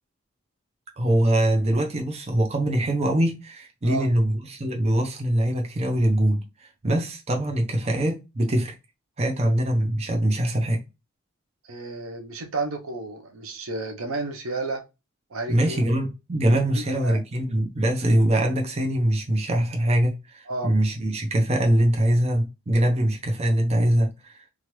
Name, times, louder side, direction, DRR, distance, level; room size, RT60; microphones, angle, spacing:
voice 1, 1.0-8.7 9.2-10.8 15.5-24.4, right 1 dB, 30° right, 0.5 m, -23 dB
voice 2, 11.7-14.8 15.3-15.9 16.7-17.2 20.5-20.7 22.9-23.0, right 3 dB, 75° right, 0.7 m, -32 dB
3.0 x 2.4 x 3.0 m
head